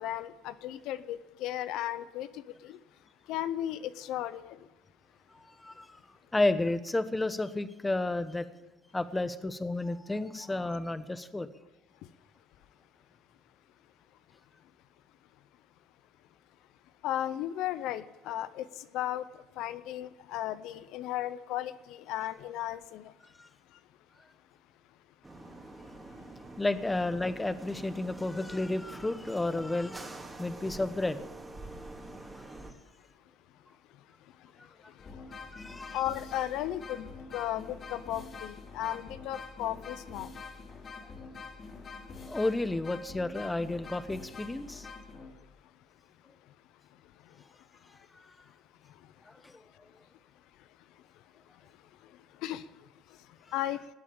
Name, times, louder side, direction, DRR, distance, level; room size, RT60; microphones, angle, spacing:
voice 1, 0.0-2.8 3.2-4.7 12.0-12.1 17.0-23.2 23.7-23.8 33.9-40.3 45.3-45.4 46.2-46.5 46.9-47.4 47.8-48.0 48.5-48.6 48.8-49.1 49.7-49.8 50.6-53.9, left 12 dB, 75° left, 0.7 m, -37 dB
voice 2, 5.6-6.0 6.3-8.5 8.9-11.5 23.4-23.5 26.6-31.3 35.5-36.0 42.2-44.9 49.3-49.5, left 2 dB, 10° left, 1.1 m, -31 dB
sound 1, 25.2-32.7, right 2 dB, 15° right, 2.7 m, -46 dB
sound 2, 35.0-45.6, left 4 dB, 40° left, 3.7 m, -46 dB
19.0 x 8.5 x 7.1 m
cardioid pair, 105°, 0 cm